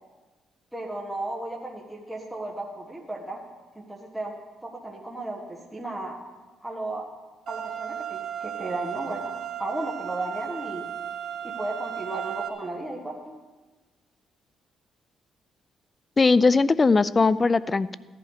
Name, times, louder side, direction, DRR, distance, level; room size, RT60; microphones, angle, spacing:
voice 1, 0.7-3.4 3.7-4.3 4.6-6.2 6.6-7.1 7.5-10.8 11.4-13.3, right 2 dB, 5° right, -1 dB, 1.6 m, -34 dB
sound 1, 7.5-12.5, right 10 dB, 70° right, 1.7 m, -35 dB
voice 2, 16.2-18.0, left 4 dB, 30° left, 18 dB, 0.4 m, -20 dB
15.0 x 11.0 x 5.0 m, 1.3 s
cardioid pair, 90°, 0 cm